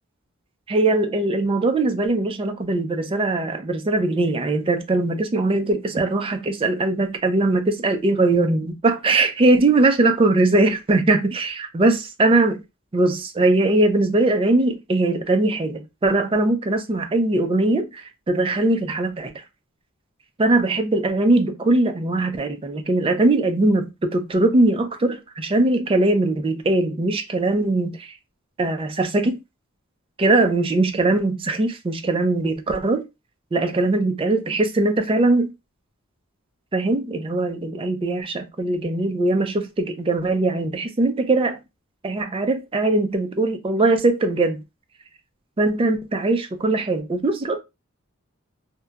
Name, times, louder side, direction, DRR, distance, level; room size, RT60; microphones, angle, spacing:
voice 1, 0.7-12.6 12.9-19.3 20.4-28.1 28.6-29.4 30.2-33.0 33.5-35.5 36.7-41.6 42.0-44.6 45.6-47.6, right 2 dB, 25° right, 0.4 m, -21 dB
2.7 x 2.2 x 2.3 m
head